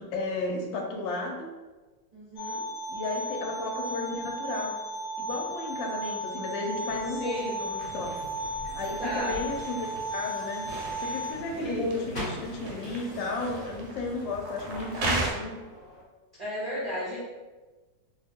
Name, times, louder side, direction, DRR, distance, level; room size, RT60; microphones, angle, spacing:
voice 1, 0.0-1.5 2.9-4.7 5.2-8.1 8.7-10.7 11.0-15.6, left 2 dB, 90° left, 1 dB, 1.3 m, -33 dB
voice 2, 2.1-2.6 7.1-7.6 9.0-9.4 11.5-12.0 16.4-17.2, equal, 45° right, -9 dB, 0.5 m, -34 dB
sound 1, 2.4-11.3, right 1 dB, 65° left, 1.2 m, -35 dB
sound 2, 6.9-16.0, equal, 35° left, 0.9 m, -44 dB
sound 3, 7.3-15.3, right 2 dB, 70° right, 1.0 m, -38 dB
2.9 x 2.1 x 3.3 m, 1.2 s
omnidirectional pair, 1.9 m